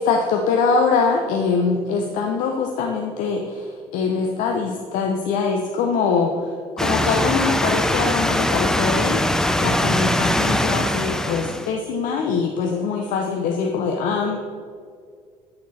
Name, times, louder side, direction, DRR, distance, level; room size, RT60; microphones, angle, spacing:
voice 1, 0.1-6.5 6.8-14.4, left 5 dB, 75° left, 2 dB, 0.7 m, -23 dB
sound 1, 6.8-11.7, left 1 dB, 5° left, 0.4 m, -21 dB
8.4 x 4.3 x 4.2 m, 2.1 s
supercardioid pair, 80°, 14 cm